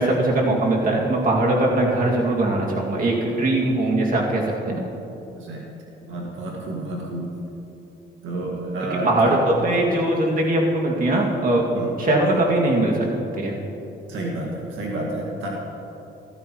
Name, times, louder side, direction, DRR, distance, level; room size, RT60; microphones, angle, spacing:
voice 1, 0.0-4.8 9.0-11.6 12.0-12.9 13.3-13.5, right 1 dB, 45° right, -2 dB, 2.3 m, -21 dB
voice 2, 5.3-5.7 6.1-7.3 8.2-9.4 11.7-11.9 14.1-15.5, right 1 dB, 80° right, -2 dB, 1.9 m, -30 dB
14.0 x 14.0 x 3.1 m, 3.0 s
cardioid pair, 90°, 20 cm